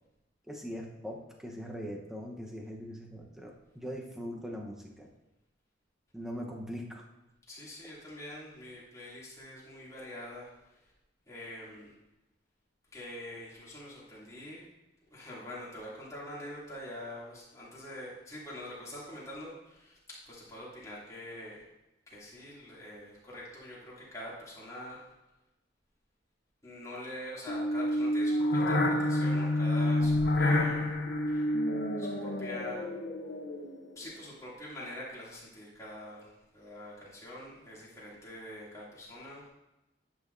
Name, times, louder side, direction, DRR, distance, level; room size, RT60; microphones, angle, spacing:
voice 1, 0.5-5.1 6.1-7.0 30.0-30.1, equal, 5° right, -1 dB, 0.9 m, -41 dB
voice 2, 7.5-10.5 11.3-11.9 12.9-14.7 15.0-21.6 22.1-25.0 26.6-30.9 31.3-31.4 32.0-32.9 34.0-39.5, left 1 dB, 20° left, -8 dB, 2.6 m, -44 dB
sound 1, 27.5-33.9, left 1 dB, 65° left, 0.9 m, -28 dB
10.5 x 6.3 x 2.6 m, 0.97 s
head